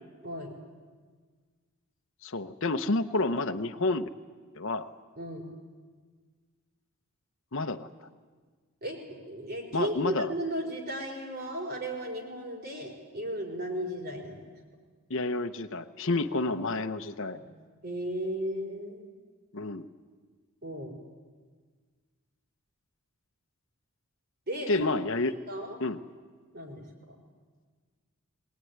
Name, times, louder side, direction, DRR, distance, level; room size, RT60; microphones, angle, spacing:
voice 1, 0.2-0.5 5.2-5.5 8.8-14.5 16.1-16.2 17.3-17.4 17.8-19.1 20.6-20.9 24.5-24.9 25.5-25.8 26.5-26.8, right 1 dB, 45° right, 2 dB, 4.7 m, -35 dB
voice 2, 2.2-4.1 4.5-4.9 7.5-8.1 9.7-10.3 15.1-17.4 19.5-19.9 24.7-25.3 25.8-26.0, left 2 dB, 60° left, 9 dB, 0.9 m, -29 dB
22.5 x 19.0 x 9.5 m, 1.5 s
head